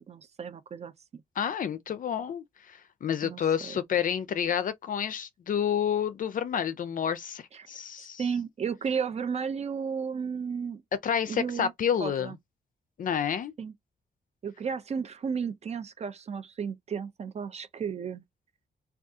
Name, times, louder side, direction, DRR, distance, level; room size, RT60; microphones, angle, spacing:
voice 1, 0.0-1.2 3.2-3.8 7.5-7.7 8.2-10.8 11.3-11.7 12.0-12.4 13.6-13.7 14.4-18.2, right 6 dB, 35° right, 0.4 m, -33 dB
voice 2, 1.4-8.2 11.0-12.3 13.0-13.5, left 8 dB, 50° left, 0.4 m, -29 dB
2.6 x 2.3 x 3.5 m
wide cardioid pair, 175°, 18 cm